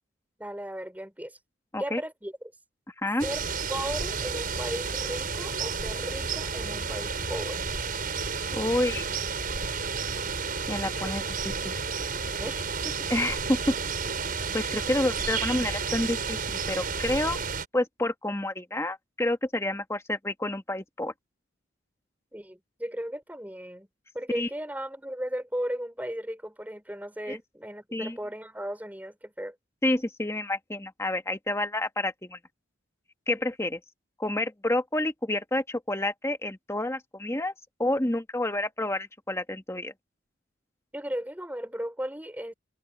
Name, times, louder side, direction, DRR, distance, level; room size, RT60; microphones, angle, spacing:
voice 1, 0.4-1.4 1.8-2.3 3.2-3.4 3.7-7.6 12.4-13.1 22.3-23.9 24.1-29.5 40.9-42.5, equal, 10° right, 5.1 m, -36 dB
voice 2, 3.0-3.3 8.5-9.0 10.7-11.7 13.1-13.7 14.5-17.4 17.7-21.1 24.3-24.5 27.3-27.4 27.9-28.2 29.8-32.4 33.3-33.8 34.2-37.5 37.8-39.9, left 1 dB, 15° left, 1.4 m, -29 dB
sound 1, 3.2-17.7, right 5 dB, 50° right, 6.0 m, -31 dB
head